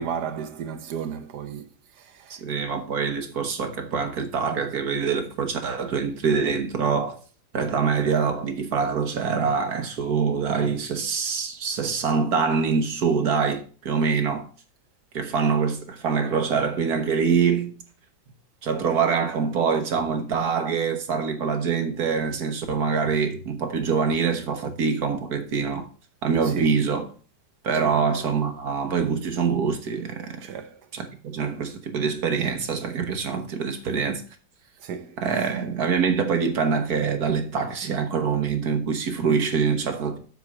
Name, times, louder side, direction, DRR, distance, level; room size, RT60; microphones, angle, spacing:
voice 1, 0.0-2.4 26.4-26.8 27.8-28.0 30.4-30.9 34.8-35.5, right 7 dB, 85° right, 1.5 m, -34 dB
voice 2, 2.3-7.2 7.5-14.5 15.1-17.7 18.6-25.9 26.2-27.1 27.6-30.4 30.9-34.2 35.2-40.2, right 6 dB, 70° right, 1.6 m, -25 dB
7.5 x 4.7 x 6.0 m
omnidirectional pair, 1.7 m